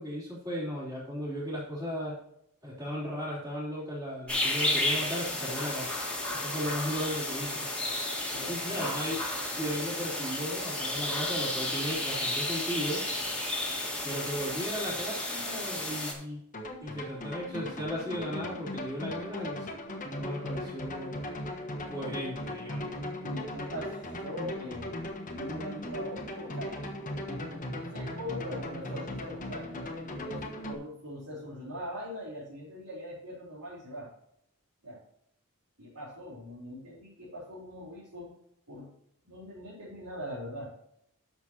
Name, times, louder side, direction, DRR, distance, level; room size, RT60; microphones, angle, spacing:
voice 1, 0.0-2.1 2.6-5.9 6.3-7.6 8.5-9.2 9.6-13.0 14.0-16.4 16.8-19.7 20.0-21.2 21.9-22.9, equal, 15° right, -8 dB, 3.5 m, -36 dB
sound 1, 4.3-16.1, left 1 dB, 5° left, 2.1 m, -32 dB
voice 2, 8.3-8.9 23.2-24.9 25.3-26.8 27.1-34.1 34.8-35.0 35.8-38.3 38.7-38.9 39.2-40.7, equal, 85° right, -9 dB, 3.8 m, -42 dB
sound 2, 16.5-30.7, left 1 dB, 35° left, 1.3 m, -38 dB
11.0 x 7.0 x 2.9 m, 0.76 s
head